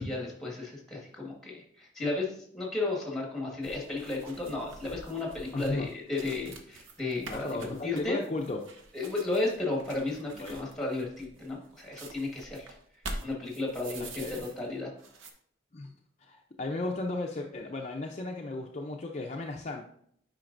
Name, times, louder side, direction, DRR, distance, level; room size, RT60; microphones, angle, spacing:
voice 1, 0.0-8.2 8.9-12.7 13.2-14.9, left 2 dB, ahead, -2 dB, 1.6 m, -34 dB
sound 1, 3.6-14.7 15.0-15.3, right 2 dB, 90° right, 0.9 m, -46 dB
voice 2, 5.5-5.9 7.3-8.6 10.3-10.6 14.0-14.5 15.7-15.9 16.2-19.8, left 2 dB, 35° left, 1 dB, 0.5 m, -35 dB
9.0 x 5.1 x 2.6 m, 0.66 s
head